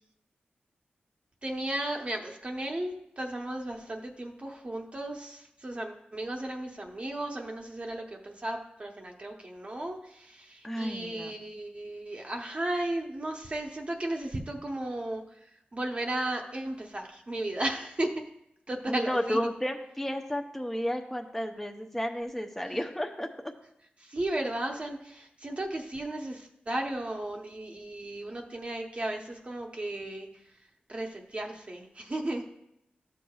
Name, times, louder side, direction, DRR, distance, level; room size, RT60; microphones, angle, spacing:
voice 1, 1.4-18.1 18.7-19.4 24.0-30.3 30.9-32.5, right 1 dB, 35° right, 1 dB, 0.8 m, -35 dB
voice 2, 10.6-11.4 18.9-23.5, equal, 5° left, 3 dB, 0.7 m, -32 dB
12.5 x 6.6 x 2.3 m, 0.79 s
wide cardioid pair, 75°, 3 cm